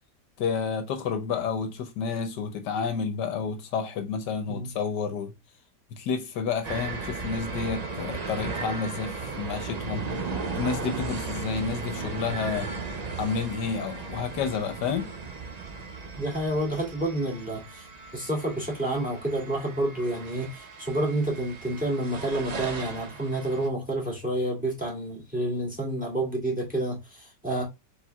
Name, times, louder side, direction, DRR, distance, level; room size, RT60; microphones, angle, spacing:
voice 1, 0.4-5.3 6.0-10.1 10.5-12.7 13.2-15.1, left 6 dB, 75° left, 1.4 m, -30 dB
sound 1, 6.6-23.7, right 4 dB, 90° right, 0.3 m, -36 dB
voice 2, 16.2-17.9 18.1-27.6, right 1 dB, 5° right, 2.1 m, -29 dB
4.4 x 4.4 x 2.2 m
omnidirectional pair, 1.9 m